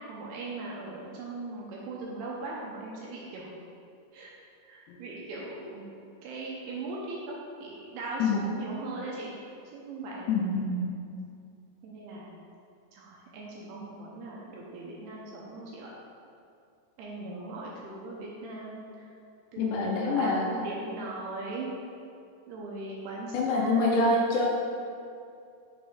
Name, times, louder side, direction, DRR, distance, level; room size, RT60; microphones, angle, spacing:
voice 1, 0.0-3.6 4.1-4.3 4.7-5.9 6.2-7.4 7.6-9.3 9.7-10.5 11.8-12.3 12.9-15.9 17.0-18.8 19.5-21.7 22.5-24.0, right 2 dB, 80° right, -4 dB, 2.5 m, -39 dB
voice 2, 10.3-10.9 17.2-17.4 19.6-20.4 23.3-24.5, left 3 dB, 85° left, -2 dB, 2.7 m, -26 dB
6.9 x 5.2 x 3.6 m, 2.5 s
omnidirectional pair, 5.2 m